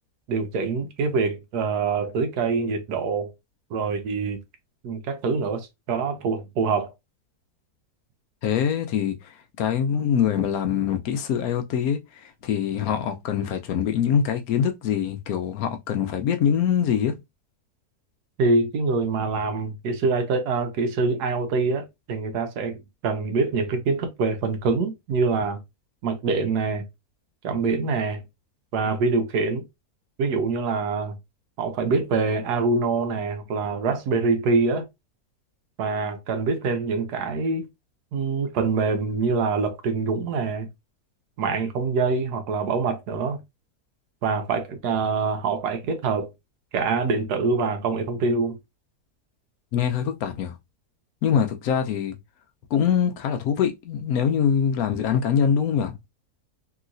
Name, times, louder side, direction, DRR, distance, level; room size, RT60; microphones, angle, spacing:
voice 1, 0.3-3.3 3.7-4.4 4.8-6.9 18.4-25.6 26.0-26.8 27.4-28.2 28.7-29.6 30.2-31.2 31.6-34.8 35.8-37.6 38.1-40.7 41.4-43.4 44.2-46.3 46.7-48.6, right 4 dB, 90° right, 1.3 m, -25 dB
voice 2, 8.4-9.2 9.6-12.0 12.4-17.2 49.7-50.5 51.2-52.1 52.7-55.9, left 8 dB, 70° left, 1.0 m, -23 dB
3.1 x 2.8 x 2.5 m
omnidirectional pair, 1.7 m